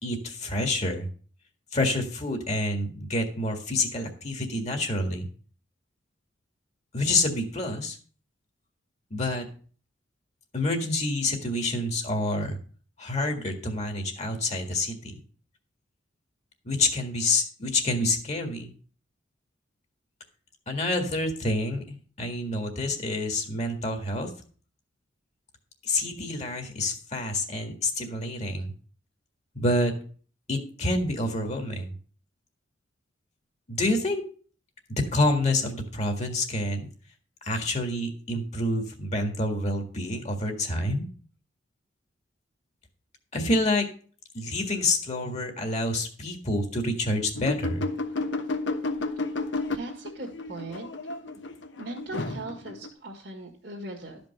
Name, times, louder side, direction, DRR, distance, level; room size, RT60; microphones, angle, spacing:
voice 1, 0.0-1.1 1.7-5.3 6.9-8.0 9.1-9.5 10.5-12.6 13.0-15.2 16.6-18.7 20.7-24.3 25.8-28.7 29.6-29.9 30.5-31.9 33.7-34.2 34.9-36.9 37.4-41.1 43.3-43.9 44.3-47.9, left 2 dB, 40° left, 4 dB, 1.8 m, -28 dB
sound 1, 47.4-52.9, left 3 dB, 70° left, 1.1 m, -32 dB
voice 2, 49.7-50.9 51.8-54.2, right 2 dB, 60° right, -3 dB, 1.9 m, -39 dB
12.5 x 5.3 x 6.6 m, 0.43 s
head